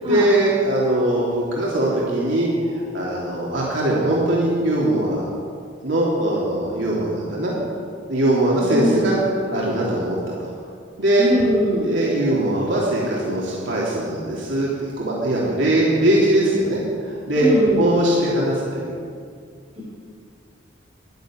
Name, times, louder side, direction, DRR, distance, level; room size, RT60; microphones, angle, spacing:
voice 1, 0.0-5.2 5.8-7.5 8.1-9.2 9.5-10.3 11.0-11.3 11.8-17.5 17.8-18.9, right 1 dB, 85° right, -5 dB, 3.5 m, -21 dB
voice 2, 8.7-9.1 11.2-11.9 17.3-18.0 19.8-19.9, left 1 dB, 35° right, -5 dB, 3.2 m, -22 dB
12.0 x 12.0 x 9.2 m, 2.2 s
head